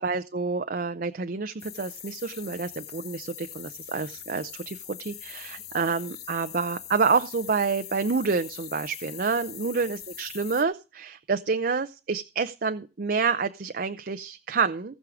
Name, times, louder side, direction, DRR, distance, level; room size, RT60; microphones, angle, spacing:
voice 1, 0.0-14.9, right 4 dB, 50° right, 8 dB, 0.6 m, -28 dB
sound 1, 1.6-10.6, left 10 dB, 60° left, 1.1 m, -42 dB
18.5 x 6.3 x 5.0 m, 0.30 s
head